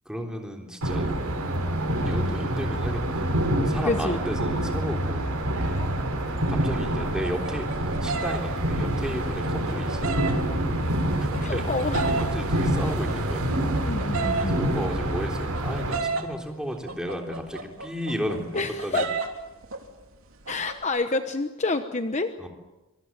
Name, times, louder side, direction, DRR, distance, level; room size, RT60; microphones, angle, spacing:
voice 1, 0.1-1.2 2.0-3.3 3.7-5.3 6.5-10.1 11.2-11.9 12.3-13.5 14.3-19.0 22.4-22.5, equal, 5° right, 2 dB, 3.5 m, -33 dB
sound 1, 0.8-16.0, right 1 dB, 85° right, 5.0 m, -27 dB
voice 2, 3.8-4.2 11.4-12.1 13.8-14.6 18.5-19.1 20.5-22.3, left 2 dB, 30° left, 8 dB, 1.0 m, -28 dB
sound 2, 6.6-10.3 10.8-12.5 12.8-16.3 16.9-19.4 19.6-20.0 20.3-20.8, right 4 dB, 65° right, 3.4 m, -32 dB
26.0 x 24.5 x 7.5 m, 1.1 s
head